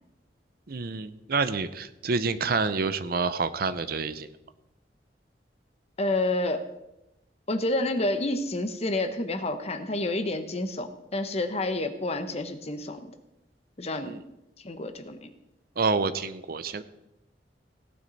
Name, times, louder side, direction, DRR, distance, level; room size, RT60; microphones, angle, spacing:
voice 1, 0.7-4.3 14.0-14.2 15.8-16.8, right 4 dB, 55° right, 13 dB, 0.6 m, -28 dB
voice 2, 6.0-6.6 7.5-13.0 13.8-14.1 14.6-15.3, left 2 dB, 35° left, 8 dB, 1.1 m, -29 dB
17.5 x 9.5 x 4.1 m, 0.90 s
head